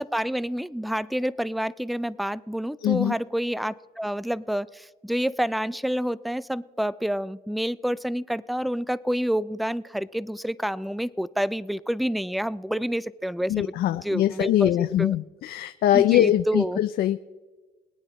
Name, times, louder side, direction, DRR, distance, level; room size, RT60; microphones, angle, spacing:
voice 1, 0.0-15.1 15.9-16.8, equal, ahead, 19 dB, 0.3 m, -28 dB
voice 2, 2.8-3.1 13.5-17.2, left 12 dB, 65° left, 10 dB, 0.5 m, -22 dB
22.5 x 9.0 x 4.1 m, 1.3 s
cardioid pair, 110°, 17 cm